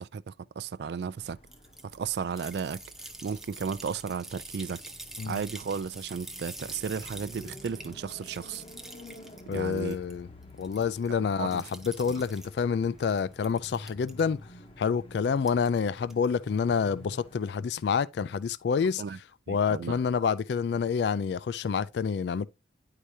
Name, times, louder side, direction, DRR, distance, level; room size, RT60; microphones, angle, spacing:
voice 1, 0.0-1.4 1.9-2.8 3.2-4.8 5.3-8.6 9.5-10.0 11.1-11.6 19.0-19.2 19.5-20.0, right 6 dB, 60° right, 0.3 m, -34 dB
sound 1, 1.1-17.4, left 1 dB, 30° left, 0.9 m, -50 dB
sound 2, 1.5-10.1 10.4-11.1 11.5-12.5 13.0-14.2 15.4-15.8 16.1-16.3, right 1 dB, ahead, 0.7 m, -46 dB
voice 2, 9.5-10.3 10.6-14.4 14.8-19.0 19.5-22.4, left 6 dB, 65° left, 0.3 m, -28 dB
10.0 x 4.8 x 2.7 m
head